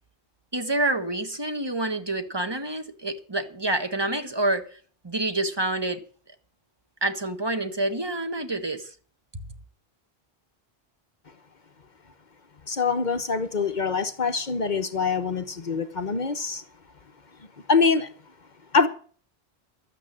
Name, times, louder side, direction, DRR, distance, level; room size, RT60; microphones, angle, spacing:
voice 1, 0.5-4.7 5.0-6.0 7.0-8.9 9.3-9.4, right 2 dB, 25° right, 1.4 m, -27 dB
voice 2, 12.7-16.6 17.7-18.1 18.7-18.9, left 4 dB, 50° left, 1.0 m, -24 dB
12.5 x 9.1 x 7.4 m
omnidirectional pair, 1.0 m